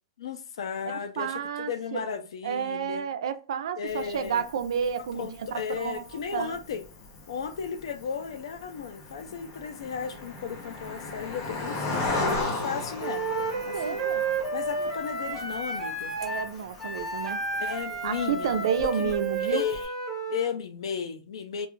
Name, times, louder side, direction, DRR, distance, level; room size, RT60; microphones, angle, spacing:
voice 1, 0.2-3.1 3.8-4.4 5.2-6.8 7.3-13.2 13.7-14.0 14.5-16.1 17.6-18.5 18.8-19.1 19.4-19.9 20.3-21.7, left 7 dB, 80° left, 0.4 m, -34 dB
voice 2, 0.9-2.2 2.4-6.0 6.3-6.6 13.3-14.2 14.8-14.9 16.2-17.4 18.0-19.6, right 7 dB, 75° right, 0.4 m, -31 dB
Cricket, 3.9-19.9, left 2 dB, 40° left, 0.7 m, -37 dB
Wind instrument woodwind instrument, 13.0-20.5, right 3 dB, 5° right, 0.6 m, -32 dB
2.4 x 2.3 x 3.0 m
supercardioid pair, 175°, 3 cm